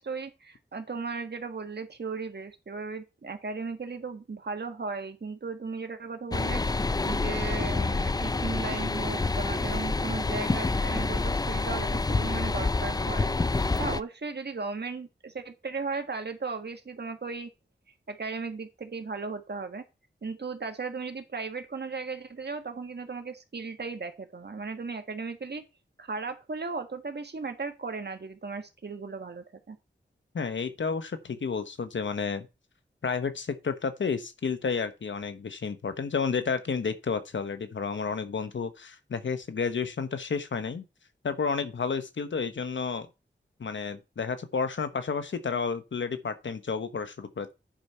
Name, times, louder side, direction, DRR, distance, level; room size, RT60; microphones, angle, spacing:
voice 1, 0.0-6.6 7.0-13.3 13.8-17.5 18.1-19.8 20.2-25.6 26.0-29.8, right 4 dB, 60° right, 1.6 m, -36 dB
sound 1, 6.3-14.0, left 3 dB, 20° left, 0.4 m, -28 dB
voice 2, 30.3-32.5 33.0-40.8 41.2-43.1 43.6-47.5, left 5 dB, 85° left, 1.1 m, -31 dB
10.5 x 4.5 x 5.5 m
wide cardioid pair, 70°, 19 cm